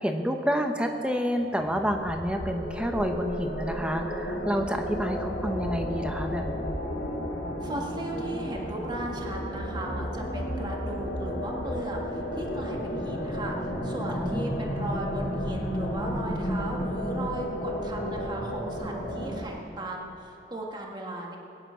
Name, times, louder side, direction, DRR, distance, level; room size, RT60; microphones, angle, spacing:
voice 1, 0.0-6.7 14.1-14.6, equal, 5° right, 4 dB, 1.0 m, -29 dB
sound 1, 1.4-19.4, equal, 65° left, 2.7 m, -32 dB
voice 2, 7.6-21.4, right 1 dB, 25° right, 0 dB, 1.6 m, -37 dB
21.5 x 9.9 x 5.7 m, 2.8 s
head